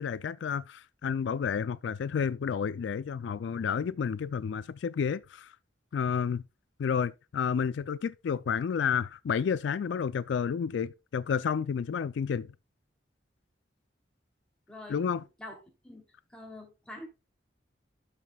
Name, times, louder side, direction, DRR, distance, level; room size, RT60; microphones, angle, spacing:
voice 1, 0.0-5.5 5.9-6.4 6.8-12.5 14.9-15.2, left 7 dB, 80° left, 0.3 m, -30 dB
voice 2, 14.7-15.1 15.4-15.5 15.8-16.0 16.3-17.1, left 2 dB, 5° left, 2.8 m, -45 dB
12.5 x 5.9 x 2.3 m
head